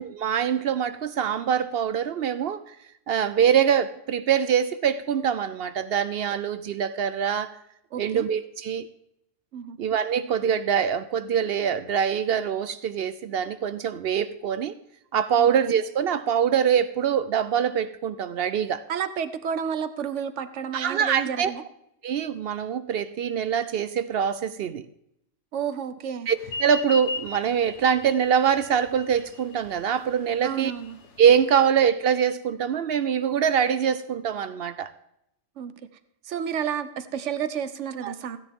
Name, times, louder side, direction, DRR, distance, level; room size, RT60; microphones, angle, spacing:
voice 1, 0.0-2.8 3.1-7.5 7.9-8.9 9.8-14.7 15.1-18.8 20.7-21.5 22.0-24.9 26.3-30.7 31.2-34.9 38.0-38.1, right 8 dB, 65° right, 0.7 m, -24 dB
voice 2, 7.9-8.2 9.5-9.8 15.4-15.5 18.9-21.6 25.5-26.3 30.4-31.0 35.6-35.7 36.3-38.4, right 8 dB, 85° right, 1.1 m, -31 dB
sound 1, 26.4-31.4, left 3 dB, 75° left, 1.3 m, -37 dB
15.5 x 10.0 x 3.6 m
omnidirectional pair, 1.2 m